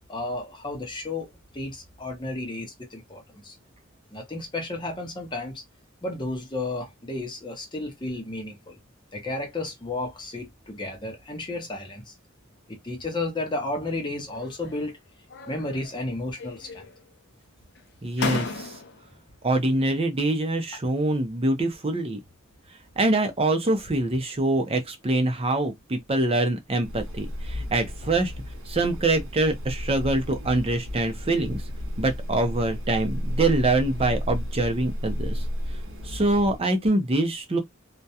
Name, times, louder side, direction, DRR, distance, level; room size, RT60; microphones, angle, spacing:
voice 1, 0.1-3.6 4.1-5.6 6.0-8.8 9.1-12.1 12.7-15.0 15.5-16.8, left 2 dB, 25° left, 0.8 m, -33 dB
sound 1, 14.3-14.9 15.3-16.1 16.4-17.1 17.8-17.9 18.2-19.1, left 3 dB, 55° left, 0.5 m, -34 dB
voice 2, 18.0-18.7 19.4-22.2 23.0-28.3 28.7-31.6 32.0-35.4 36.0-37.6, right 2 dB, 30° right, 0.6 m, -24 dB
sound 2, 26.8-36.6, equal, 75° right, 0.7 m, -33 dB
2.3 x 2.1 x 2.7 m
head